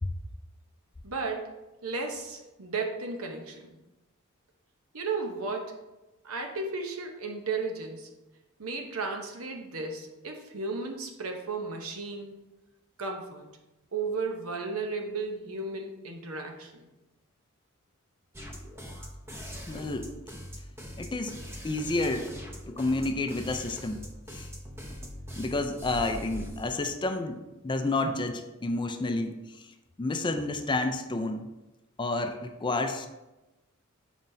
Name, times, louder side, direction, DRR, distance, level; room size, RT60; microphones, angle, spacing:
voice 1, 1.0-1.5 1.8-3.8 4.9-5.8 6.2-8.1 8.6-12.4 13.0-13.5 13.9-16.9, right 3 dB, 80° right, 3 dB, 0.9 m, -34 dB
sound 1, 18.3-26.8, equal, 10° right, 0.7 m, -42 dB
voice 2, 19.7-20.1 21.0-21.3 21.6-22.3 22.7-24.0 24.3-24.5 25.4-27.4 27.6-29.3 30.0-31.5 32.0-33.1, left 2 dB, 20° left, 6 dB, 0.4 m, -30 dB
7.2 x 5.1 x 2.7 m, 1.0 s
head